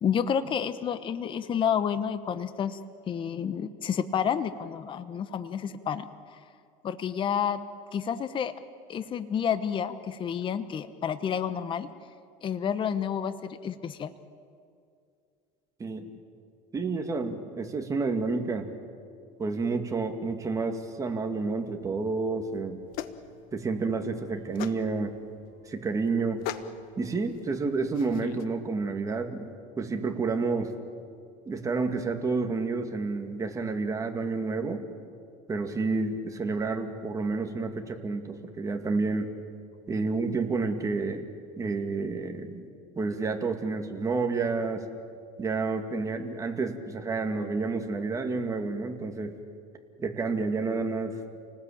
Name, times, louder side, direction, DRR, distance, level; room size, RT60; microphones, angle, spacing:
voice 1, 0.0-2.8 3.1-6.4 6.8-7.6 7.9-8.5 8.9-11.9 12.4-14.1, left 8 dB, 30° left, 12 dB, 1.0 m, -30 dB
voice 2, 16.7-18.7 19.4-22.8 23.5-25.2 25.7-26.4 27.0-30.7 31.5-34.8 35.5-39.3 39.9-41.2 41.6-42.7 43.0-44.8 45.4-49.3 50.0-51.4, right 4 dB, 20° right, 4 dB, 2.3 m, -30 dB
sound 1, 22.3-28.4, left 10 dB, 65° left, 1.3 m, -42 dB
29.0 x 19.5 x 8.8 m, 2.4 s
cardioid pair, 130°, 16 cm